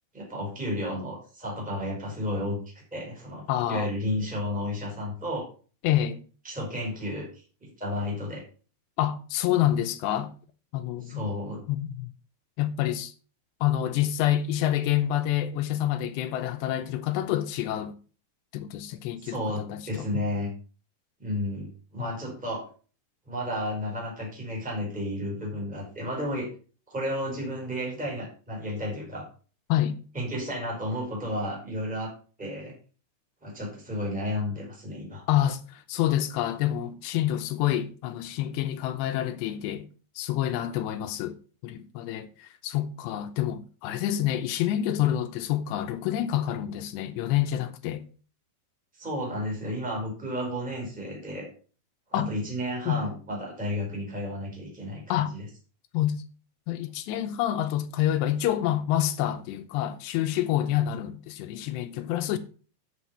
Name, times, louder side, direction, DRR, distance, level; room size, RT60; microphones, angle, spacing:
voice 1, 0.1-5.5 6.4-7.3 7.6-8.4 11.0-11.6 19.2-20.5 21.2-22.6 23.3-26.5 26.9-29.3 30.1-32.1 32.4-32.7 33.4-35.2 49.0-51.5 52.1-55.5, left 1 dB, ahead, 3.7 m, -32 dB
voice 2, 3.5-3.9 5.8-6.2 9.0-10.3 10.7-11.2 11.7-12.1 12.6-13.1 13.6-17.9 18.5-20.1 22.0-22.1 29.7-30.0 35.3-39.9 40.2-41.4 41.6-48.0 52.1-52.3 52.9-53.0 55.1-55.3 55.9-56.2 56.7-62.4, left 12 dB, 80° left, 2.7 m, -27 dB
8.4 x 8.0 x 5.7 m
omnidirectional pair, 5.5 m